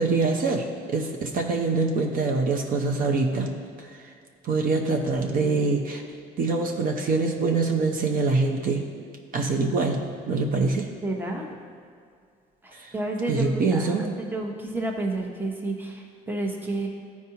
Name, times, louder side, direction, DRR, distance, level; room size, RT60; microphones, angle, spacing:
voice 1, 0.0-4.1 4.4-6.0 6.4-8.8 9.3-10.0 10.3-10.9 12.7-12.9 13.3-14.1, right 3 dB, 55° right, 2 dB, 0.8 m, -24 dB
voice 2, 11.0-11.4 12.6-16.9, right 2 dB, 10° right, 1 dB, 0.9 m, -30 dB
12.0 x 4.7 x 2.8 m, 2.2 s
cardioid pair, 110°, 17 cm